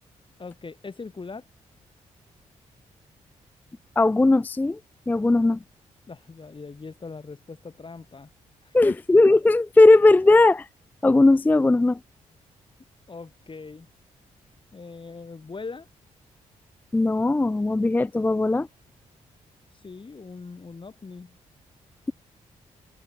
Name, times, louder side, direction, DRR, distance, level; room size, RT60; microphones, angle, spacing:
voice 1, 0.4-1.5 6.1-8.3 8.6-9.0 13.1-13.9 14.7-15.9 19.7-21.4, left 4 dB, 35° left, 1.7 m, -40 dB
voice 2, 4.0-4.8 5.1-5.6 8.7-10.7 11.0-12.0 16.9-18.7, left 2 dB, 10° left, 0.3 m, -18 dB
supercardioid pair, 45°, 15 cm